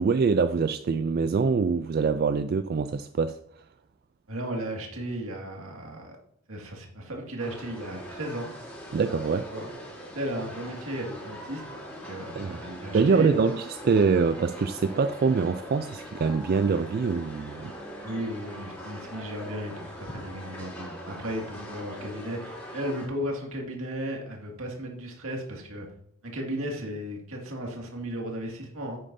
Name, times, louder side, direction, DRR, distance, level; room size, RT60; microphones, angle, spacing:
voice 1, 0.0-3.4 8.9-9.5 12.4-12.6 12.9-17.7, right 5 dB, 45° right, 0.3 m, -24 dB
voice 2, 4.3-6.2 6.5-8.5 9.5-9.7 10.1-11.6 12.1-13.3 18.0-25.9 26.2-29.0, equal, 70° right, 2.1 m, -35 dB
sound 1, 7.4-23.1, equal, 10° left, 3.3 m, -42 dB
10.5 x 8.5 x 2.7 m
head